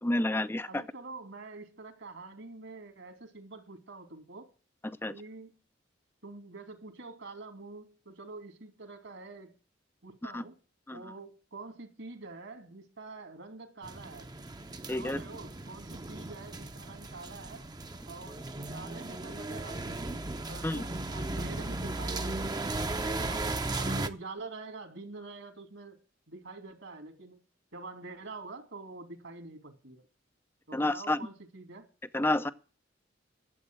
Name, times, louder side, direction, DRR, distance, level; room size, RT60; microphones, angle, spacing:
voice 1, 0.0-0.8 4.8-5.1 10.2-10.4 10.9-11.0 14.9-15.2 20.6-20.8 30.7-31.2 32.1-32.5, left 1 dB, 10° left, 0.5 m, -29 dB
voice 2, 0.7-4.5 5.1-5.5 6.2-9.6 10.0-10.6 10.9-14.3 15.0-17.6 18.1-20.1 20.5-22.8 23.2-23.5 23.8-26.0 26.3-27.4 27.7-30.1 30.7-31.9, right 3 dB, 70° right, 2.9 m, -46 dB
sound 1, 13.8-24.1, right 2 dB, 20° right, 0.8 m, -36 dB
12.0 x 7.9 x 7.8 m
head